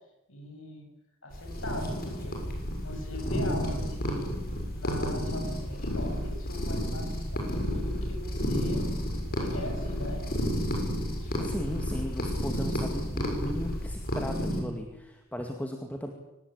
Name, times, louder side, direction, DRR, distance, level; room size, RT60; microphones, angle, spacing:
voice 1, 0.3-0.9 1.2-2.4 2.8-4.3 4.7-8.9 9.3-10.3 11.1-11.4, left 1 dB, 75° left, 3 dB, 7.6 m, -40 dB
sound 1, 1.3-14.6, equal, 50° left, 7.2 m, -31 dB
voice 2, 11.4-16.1, equal, 10° left, 3 dB, 2.2 m, -36 dB
24.5 x 19.5 x 9.0 m, 0.94 s
head